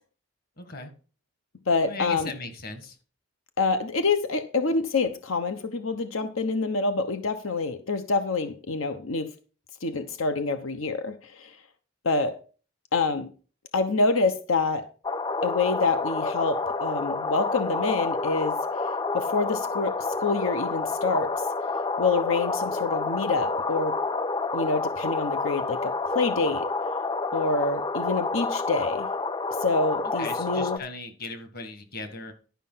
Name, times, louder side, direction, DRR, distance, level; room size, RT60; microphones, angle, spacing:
voice 1, 0.6-0.9 1.8-3.0 30.2-32.3, left 3 dB, 50° left, 1.8 m, -38 dB
voice 2, 1.7-2.3 3.6-9.3 9.8-11.5 12.0-12.4 12.9-13.3 13.7-14.8 15.4-18.6 19.1-21.3 22.0-23.9 24.5-26.6 27.3-29.1 29.6-30.8, left 3 dB, 90° left, 1.0 m, -26 dB
sound 1, 15.0-30.8, left 3 dB, 20° left, 0.4 m, -29 dB
11.5 x 5.6 x 5.7 m
head